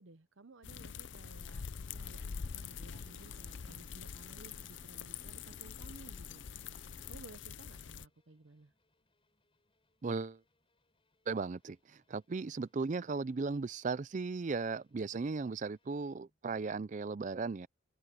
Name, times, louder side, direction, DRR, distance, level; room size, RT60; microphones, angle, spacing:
voice 1, 0.0-1.6 1.9-8.7, right 3 dB, 70° right, 0.8 m, -57 dB
sound 1, 0.6-8.0, left 6 dB, 60° left, 0.5 m, -45 dB
sound 2, 1.9-7.3, right 1 dB, 15° right, 3.1 m, -64 dB
sound 3, 5.3-16.5 16.9-17.1, left 2 dB, 25° left, 6.9 m, -80 dB
voice 2, 10.0-10.4 11.3-17.7, right 4 dB, 35° right, 0.4 m, -36 dB
open air
head